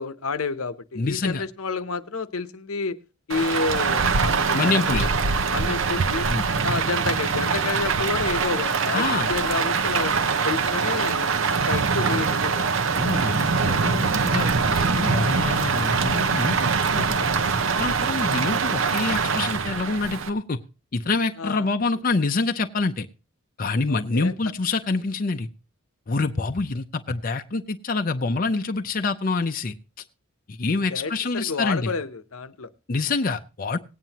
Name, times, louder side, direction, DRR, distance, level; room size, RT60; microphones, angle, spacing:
voice 1, 0.0-3.0 3.3-5.1 5.5-6.3 6.6-9.0 9.3-10.1 10.4-12.7 21.4-21.7 23.9-24.3 30.9-32.7, left 4 dB, 75° left, 12 dB, 0.9 m, -30 dB
voice 2, 1.0-1.4 4.5-5.1 6.3-6.5 8.9-9.3 12.9-17.1 17.8-20.6 20.9-23.1 23.6-25.5 26.1-29.8 30.5-31.9 32.9-33.8, left 3 dB, 40° left, 6 dB, 0.6 m, -26 dB
Rain, 3.3-20.3, right 5 dB, 60° right, 0.8 m, -23 dB
18.5 x 9.1 x 2.9 m, 0.31 s
head